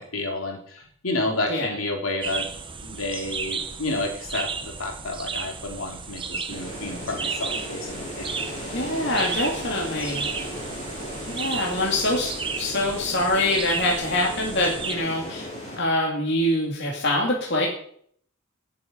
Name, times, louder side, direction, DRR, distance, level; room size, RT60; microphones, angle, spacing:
voice 1, 0.0-2.5 2.8-8.3, left 2 dB, 75° left, 2 dB, 3.0 m, -30 dB
sound 1, 2.2-15.0, right 5 dB, 25° right, 1.0 m, -34 dB
sound 2, 6.5-15.8, equal, 35° left, 6.4 m, -36 dB
voice 2, 8.7-10.2 11.3-15.5 15.8-17.7, left 1 dB, 55° left, -1 dB, 2.3 m, -24 dB
17.5 x 7.7 x 5.2 m, 0.63 s
head